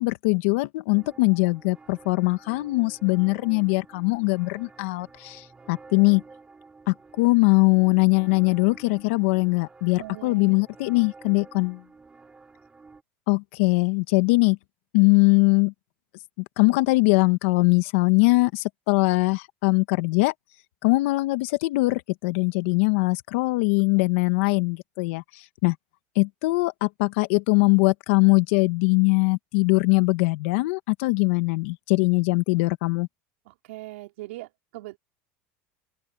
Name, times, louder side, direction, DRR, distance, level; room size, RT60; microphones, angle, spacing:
voice 1, 0.0-6.2 6.9-11.8 13.3-14.6 14.9-15.7 16.6-20.3 20.8-25.2 25.6-25.7 26.1-33.1, left 26 dB, 75° left, 1.6 m, -21 dB
sound 1, 0.9-13.0, right 4 dB, 15° right, 5.7 m, -50 dB
voice 2, 9.9-10.5 33.4-35.0, right 19 dB, 85° right, 4.9 m, -40 dB
open air
supercardioid pair, 120°, 7 cm